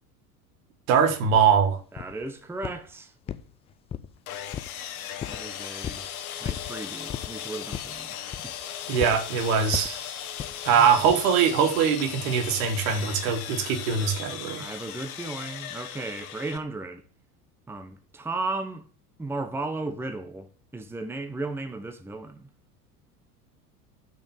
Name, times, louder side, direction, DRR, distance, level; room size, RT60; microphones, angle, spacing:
voice 1, 0.9-1.8 8.9-10.0 10.6-14.6, right 7 dB, 55° right, 1.6 m, -22 dB
sound 1, 1.3-1.5 2.0-2.3 2.6-2.9 3.3-4.2 4.5-4.8 5.2-5.4 5.8-6.1 6.4-6.7 7.1-7.3 7.7-8.0 8.3-8.6 9.0-9.2 9.7-10.0 10.4-10.6 11.1-11.3, left 9 dB, 15° left, 0.3 m, -35 dB
voice 2, 1.9-3.1 5.2-6.1 6.4-8.8 10.8-10.9 14.5-17.0 17.7-18.8 19.2-22.5, right 2 dB, 5° right, 1.0 m, -35 dB
Sawing, 4.3-16.6, left 10 dB, 65° left, 1.3 m, -37 dB
6.4 x 6.1 x 7.0 m
figure-of-eight pair, 75°, 46 cm